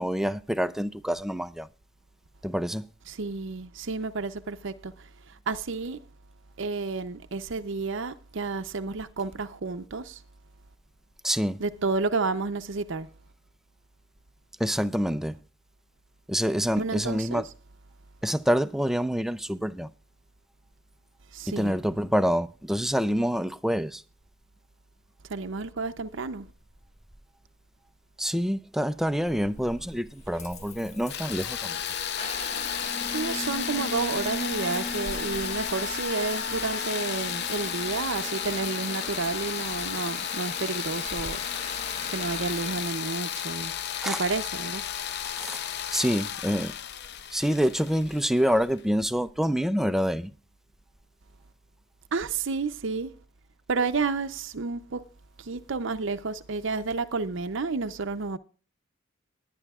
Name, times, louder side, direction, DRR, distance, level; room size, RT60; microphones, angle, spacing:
voice 1, 0.0-1.7 2.4-2.9 11.2-11.6 14.6-15.4 16.3-17.5 18.2-19.9 21.5-24.0 28.2-31.8 44.0-44.2 45.4-45.6 45.9-46.7 47.3-50.3, equal, ahead, 0.5 m, -27 dB
voice 2, 3.1-4.9 5.5-6.0 6.6-10.2 11.6-13.1 16.8-17.4 21.3-21.8 25.3-26.5 33.1-41.4 41.7-41.8 42.1-43.7 44.1-44.8 52.1-53.1 53.7-55.0 55.4-58.4, right 4 dB, 65° right, 0.7 m, -31 dB
Water tap faucet / Bathtub (filling or washing) / Trickle dribble, 29.2-48.1, left 3 dB, 35° left, 1.3 m, -39 dB
sound 1, 31.1-48.8, left 9 dB, 55° left, 0.6 m, -34 dB
21.0 x 9.9 x 2.4 m
head